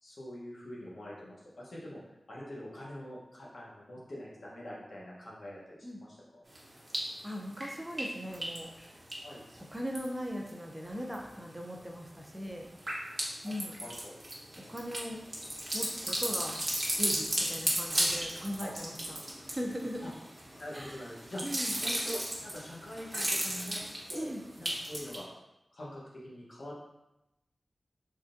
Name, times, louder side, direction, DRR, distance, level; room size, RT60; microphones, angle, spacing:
voice 1, 0.0-2.0 2.3-6.4 9.2-9.4 13.4-13.5 13.8-14.2 18.6-18.7 20.0-20.1 20.6-21.4 21.8-23.8 24.1-24.3 24.6-25.3 25.7-26.8, equal, 75° left, -5 dB, 1.0 m, -44 dB
sound 1, 6.5-7.2 7.5-10.5 10.8-11.4 11.8-25.2, right 1 dB, 30° right, 1.0 m, -35 dB
voice 2, 7.2-8.9 9.6-12.7 13.4-13.7 14.6-15.2 15.7-16.6 16.9-19.2 19.5-20.0 20.7-21.0 21.4-21.7 24.1-24.4, equal, 10° right, 1 dB, 0.5 m, -39 dB
3.6 x 3.3 x 2.6 m, 0.92 s
wide cardioid pair, 70°, 0 cm